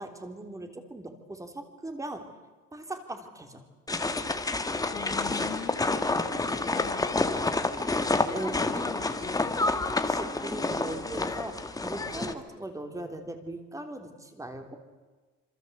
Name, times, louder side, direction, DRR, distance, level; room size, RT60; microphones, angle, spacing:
voice 1, 0.0-2.3 2.7-3.6 8.3-8.9 9.8-14.8, right 2 dB, 10° right, 6 dB, 3.4 m, -39 dB
sound 1, 3.9-12.3, left 2 dB, 10° left, 1.8 m, -29 dB
voice 2, 4.9-7.2 8.6-9.4, left 8 dB, 40° left, 8 dB, 1.9 m, -42 dB
27.0 x 26.5 x 8.2 m, 1.4 s
cardioid pair, 150°, 30 cm